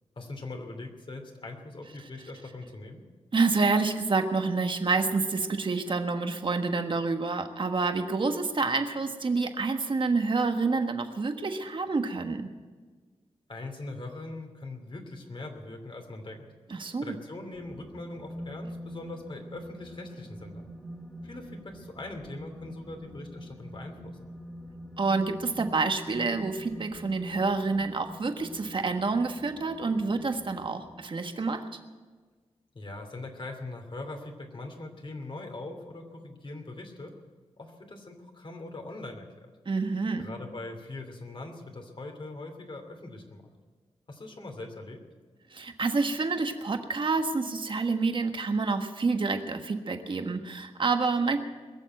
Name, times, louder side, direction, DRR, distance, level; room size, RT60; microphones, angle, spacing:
voice 1, 0.2-3.1 13.5-16.5 17.0-20.7 21.2-24.3 32.7-37.1 37.6-39.5 40.2-43.5 44.1-45.0, left 2 dB, 50° left, 4 dB, 2.8 m, -41 dB
voice 2, 3.3-12.5 16.7-17.1 25.0-31.6 39.6-40.3 45.5-51.4, right 4 dB, 50° right, 6 dB, 1.4 m, -28 dB
sound 1, 17.5-30.9, equal, ahead, 2.4 m, -45 dB
21.5 x 7.3 x 9.2 m, 1.5 s
wide cardioid pair, 85°, 11 cm